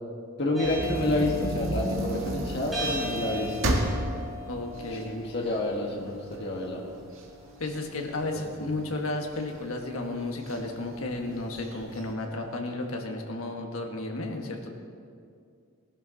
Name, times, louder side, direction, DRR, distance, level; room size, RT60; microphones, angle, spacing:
voice 1, 0.4-3.8 5.0-6.8 8.2-8.6, left 1 dB, 55° left, -1 dB, 1.7 m, -29 dB
sound 1, 0.5-12.7, equal, ahead, 3.5 m, -41 dB
sound 2, 0.6-5.8 6.3-6.4 6.7-8.8 9.3-9.9 10.5-10.6 10.9-11.0 11.4-12.0, right 1 dB, 70° right, 1.7 m, -32 dB
voice 2, 4.5-5.1 7.6-14.7, left 2 dB, 90° left, 2 dB, 1.6 m, -33 dB
17.5 x 12.0 x 4.1 m, 2.3 s
head